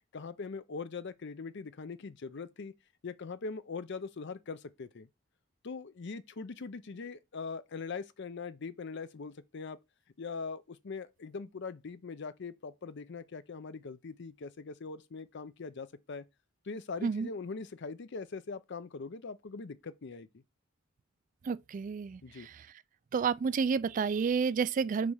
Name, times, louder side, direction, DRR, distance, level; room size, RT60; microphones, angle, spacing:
voice 1, 0.1-2.7 3.0-5.1 5.6-9.8 10.2-16.2 16.6-20.4 22.2-22.5, left 4 dB, 60° left, 0.6 m, -41 dB
voice 2, 21.4-22.5 23.1-25.1, right 5 dB, 40° right, 0.3 m, -30 dB
4.9 x 4.6 x 5.5 m
head